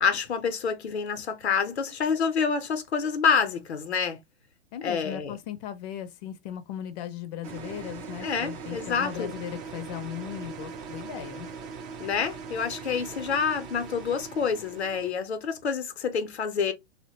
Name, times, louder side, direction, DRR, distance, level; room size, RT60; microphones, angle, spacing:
voice 1, 0.0-4.2 4.8-5.4 8.2-9.4 12.0-16.7, left 6 dB, 85° left, 0.7 m, -27 dB
voice 2, 4.7-11.5, left 10 dB, 40° left, 0.5 m, -37 dB
sound 1, 7.4-15.1, right 5 dB, 25° right, 0.4 m, -40 dB
2.7 x 2.1 x 2.7 m
hypercardioid pair, 110°, 32 cm